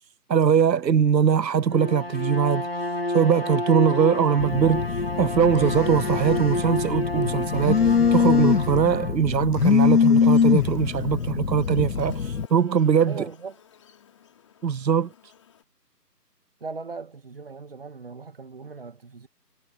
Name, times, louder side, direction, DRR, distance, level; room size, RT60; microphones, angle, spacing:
voice 1, 0.3-2.7 3.1-4.8 5.2-7.8 8.1-13.2 14.6-15.1, right 7 dB, 90° right, 0.7 m, -21 dB
Bowed string instrument, 1.6-9.2, left 1 dB, 40° left, 0.6 m, -30 dB
Telephone, 4.4-12.5, left 6 dB, 65° left, 0.8 m, -23 dB
Buzz, 10.0-15.6, left 8 dB, 20° left, 3.7 m, -54 dB
voice 2, 13.1-13.6 16.6-19.3, right 4 dB, 35° right, 1.9 m, -39 dB
figure-of-eight pair, 165°, 49 cm